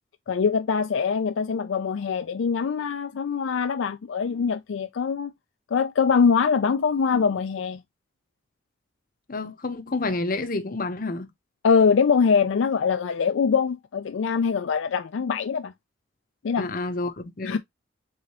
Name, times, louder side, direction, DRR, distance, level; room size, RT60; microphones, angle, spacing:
voice 1, 0.3-5.3 5.7-7.8 11.6-15.7 16.4-16.7 17.4-17.6, left 6 dB, 70° left, 0.4 m, -23 dB
voice 2, 9.3-11.3 16.6-17.6, left 2 dB, 40° left, 0.8 m, -29 dB
4.8 x 3.8 x 2.8 m
head